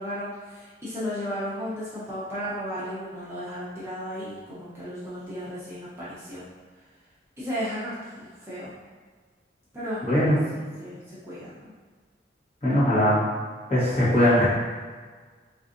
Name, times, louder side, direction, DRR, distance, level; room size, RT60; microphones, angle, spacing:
voice 1, 0.0-6.4 7.4-8.7 9.7-11.6, equal, 15° right, -11 dB, 0.7 m, -34 dB
voice 2, 10.0-10.4 12.6-13.2 13.7-14.6, equal, 35° left, -10 dB, 1.1 m, -20 dB
3.9 x 2.5 x 2.5 m, 1.5 s
head